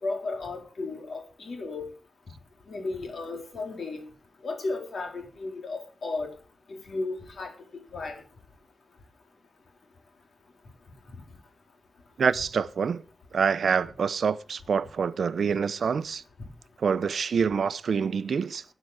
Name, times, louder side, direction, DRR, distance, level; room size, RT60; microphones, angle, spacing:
voice 1, 0.0-1.9 2.7-4.0 4.4-6.3 6.9-7.5 7.9-8.2, left 3 dB, 65° left, 3.6 m, -34 dB
voice 2, 12.2-13.0 13.3-16.2 16.8-18.6, right 6 dB, 70° right, 0.6 m, -26 dB
13.0 x 9.1 x 4.8 m
wide cardioid pair, 145°, 0 cm